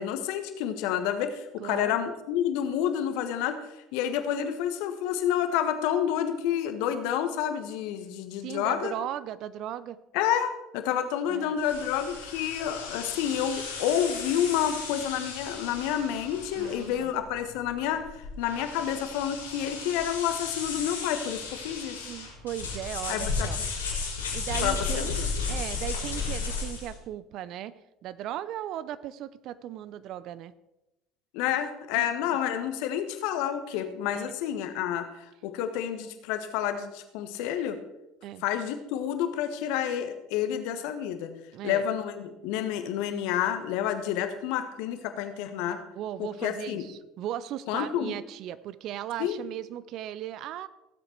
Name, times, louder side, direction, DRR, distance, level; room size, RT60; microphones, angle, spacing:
voice 1, 0.0-3.6 3.9-8.9 10.1-22.0 23.1-23.5 24.6-25.3 31.3-37.8 38.4-41.3 41.6-45.8 46.2-46.8 47.7-48.2 49.2-49.4, left 10 dB, 65° left, 8 dB, 1.3 m, -29 dB
voice 2, 1.6-2.0 4.4-4.5 8.4-10.0 11.3-11.6 16.5-17.1 22.0-23.6 24.3-25.1 25.5-27.7 28.0-30.5 31.9-32.1 33.7-33.9 34.1-34.2 38.2-38.4 41.5-41.9 45.7-50.7, right 11 dB, 55° right, 17 dB, 0.6 m, -37 dB
sound 1, 11.6-27.0, left 4 dB, 85° left, 3.7 m, -35 dB
17.0 x 7.9 x 4.5 m, 0.94 s
hypercardioid pair, 65°, 0 cm